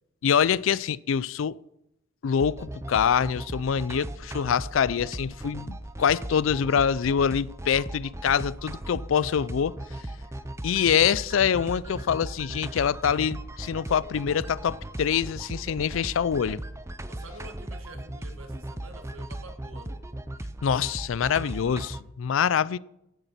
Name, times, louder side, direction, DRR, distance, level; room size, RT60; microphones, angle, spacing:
voice 1, 0.2-1.6 2.2-9.8 10.6-16.6 20.6-22.8, left 7 dB, 70° left, 0.4 m, -25 dB
sound 1, 2.4-22.0, right 1 dB, 15° right, 0.6 m, -37 dB
voice 2, 17.1-20.1, right 2 dB, 80° right, 1.7 m, -47 dB
11.5 x 8.1 x 5.8 m
head